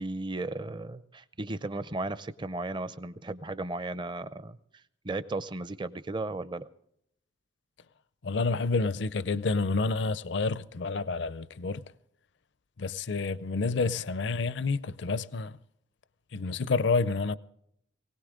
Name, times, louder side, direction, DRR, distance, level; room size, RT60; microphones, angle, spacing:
voice 1, 0.0-6.7, right 2 dB, 25° right, 0.5 m, -35 dB
voice 2, 8.2-11.8 12.8-15.6 16.3-17.4, left 3 dB, 60° left, 0.5 m, -29 dB
20.0 x 18.0 x 3.7 m
head